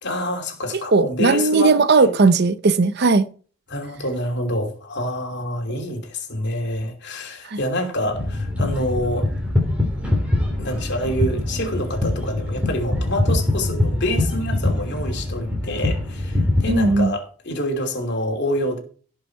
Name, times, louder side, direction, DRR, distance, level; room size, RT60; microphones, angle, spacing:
voice 1, 0.0-2.1 3.7-9.3 10.6-18.8, equal, 50° left, 2.8 m, -27 dB
voice 2, 0.7-3.3 7.5-7.6 16.7-17.1, right 3 dB, 50° right, 0.6 m, -17 dB
sound 1, 8.1-17.0, left 1 dB, 5° right, 2.9 m, -23 dB
16.5 x 5.7 x 4.6 m
head